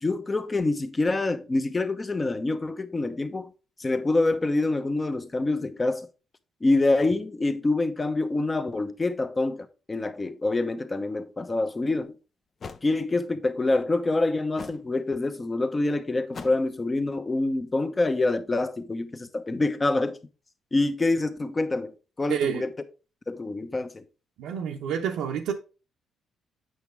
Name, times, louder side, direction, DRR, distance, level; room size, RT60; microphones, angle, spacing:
voice 1, 0.0-3.5 3.8-6.1 6.6-12.1 12.8-20.2 20.7-22.7 23.3-24.0, left 2 dB, 25° left, 0.9 m, -26 dB
sound 1, 11.7-11.8 12.6-12.9 14.6-14.9 16.3-16.7, left 5 dB, 45° left, 0.6 m, -40 dB
voice 2, 22.3-22.7 24.4-25.5, right 8 dB, 90° right, 0.8 m, -28 dB
7.9 x 6.1 x 3.3 m
cardioid pair, 90°, 0 cm